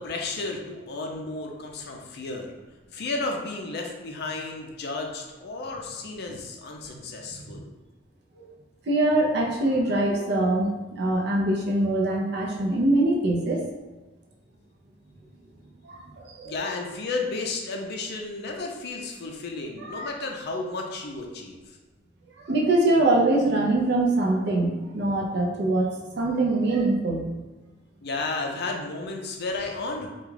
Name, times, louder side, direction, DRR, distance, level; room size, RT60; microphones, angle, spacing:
voice 1, 0.0-2.5 2.9-7.7 16.4-21.6 28.0-30.1, left 3 dB, 60° left, 1 dB, 0.4 m, -33 dB
voice 2, 8.9-13.6 15.9-16.5 19.8-20.1 22.4-25.9 26.1-27.4, right 2 dB, 60° right, 0 dB, 0.5 m, -23 dB
2.3 x 2.2 x 3.2 m, 1.2 s
head